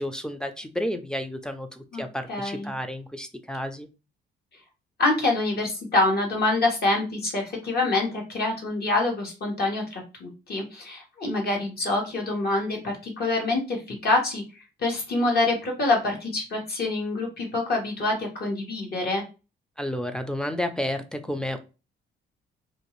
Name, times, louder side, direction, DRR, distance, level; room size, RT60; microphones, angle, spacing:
voice 1, 0.0-3.9 19.8-21.6, left 1 dB, 5° left, 8 dB, 0.4 m, -31 dB
voice 2, 2.3-2.7 5.0-14.4 14.8-19.2, left 2 dB, 50° left, 0 dB, 1.1 m, -26 dB
2.5 x 2.3 x 3.0 m, 0.31 s
cardioid pair, 90°, 20 cm